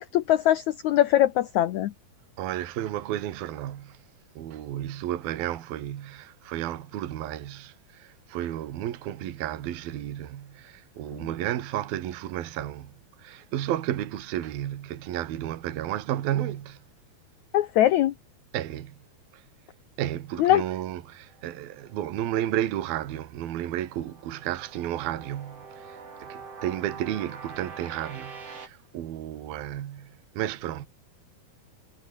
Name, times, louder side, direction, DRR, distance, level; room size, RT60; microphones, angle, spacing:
voice 1, 0.0-1.9 11.1-11.2 17.5-18.1 20.4-20.6, left 13 dB, 85° left, 1.6 m, -22 dB
voice 2, 2.4-4.0 4.4-16.8 18.5-19.0 19.3-19.4 20.0-30.9, right 12 dB, 70° right, 3.4 m, -32 dB
sound 1, 20.9-23.2 23.6-28.7, right 5 dB, 40° right, 4.7 m, -45 dB
omnidirectional pair, 4.6 m